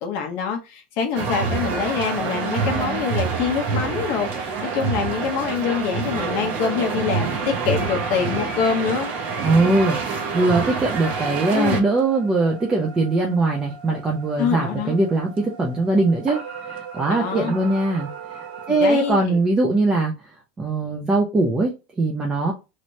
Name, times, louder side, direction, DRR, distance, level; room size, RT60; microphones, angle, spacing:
voice 1, 0.0-9.1 11.5-11.8 14.4-14.9 17.1-17.5 18.7-19.4, left 7 dB, 45° left, 0.6 m, -25 dB
sound 1, 1.2-11.8, right 5 dB, 40° right, 0.9 m, -26 dB
sound 2, 7.2-19.1, right 6 dB, 85° right, 1.5 m, -39 dB
voice 2, 9.4-20.1 20.6-22.5, right 2 dB, 15° right, 0.6 m, -21 dB
3.1 x 3.0 x 2.6 m
supercardioid pair, 160°, 5 cm